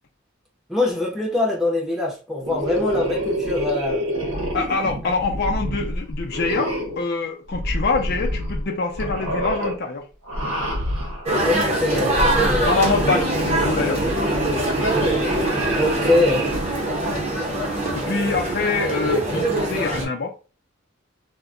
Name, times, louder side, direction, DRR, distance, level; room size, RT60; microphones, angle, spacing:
voice 1, 0.7-4.0 11.4-12.7 15.7-16.5, left 2 dB, ahead, 0.7 m, -23 dB
sound 1, 2.4-7.0 7.5-8.7 8.9-9.8 10.2-11.3 12.0-16.7, equal, 90° right, 0.8 m, -27 dB
voice 2, 4.5-10.1 12.7-14.0 16.9-17.3 17.9-20.3, left 4 dB, 50° left, 0.5 m, -25 dB
sound 2, 11.3-20.1, right 1 dB, 30° right, 0.8 m, -23 dB
2.2 x 2.1 x 3.7 m
head